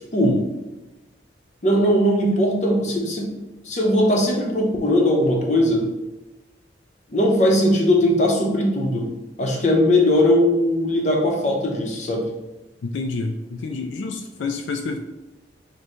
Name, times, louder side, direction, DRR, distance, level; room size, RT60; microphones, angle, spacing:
voice 1, 1.6-3.3 3.6-5.8 7.1-9.1 9.4-12.3, left 1 dB, 40° left, -1 dB, 0.8 m, -19 dB
voice 2, 12.8-15.0, left 3 dB, 80° left, 4 dB, 0.4 m, -28 dB
6.5 x 2.2 x 3.1 m, 1.0 s
head